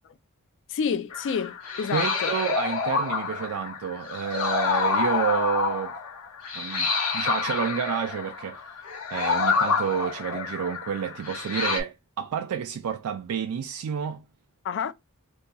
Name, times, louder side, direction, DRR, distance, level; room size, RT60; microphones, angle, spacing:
voice 1, 0.7-2.3 14.6-14.9, left 6 dB, 55° left, 0.3 m, -29 dB
sound 1, 1.1-11.8, left 5 dB, 75° left, 1.0 m, -28 dB
voice 2, 1.9-5.9 6.5-8.6 9.1-14.2, right 7 dB, 75° right, 0.3 m, -29 dB
2.7 x 2.2 x 3.7 m
head